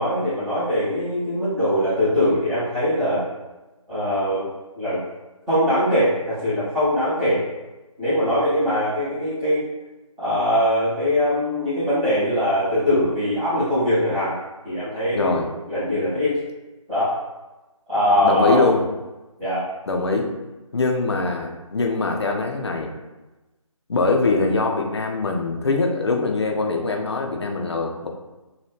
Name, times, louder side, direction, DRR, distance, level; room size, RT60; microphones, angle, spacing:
voice 1, 0.0-3.3 3.9-4.5 4.8-5.0 5.5-7.4 8.0-9.6 10.2-14.4 14.6-16.3 16.9-17.1 17.9-18.6 19.4-19.6, equal, 5° right, -17 dB, 0.5 m, -22 dB
voice 2, 15.1-15.5 18.2-18.8 19.9-20.3 20.7-22.9 23.9-28.1, left 3 dB, 50° left, 2 dB, 0.5 m, -22 dB
2.8 x 2.2 x 3.3 m, 1.1 s
figure-of-eight pair, 155°, 18 cm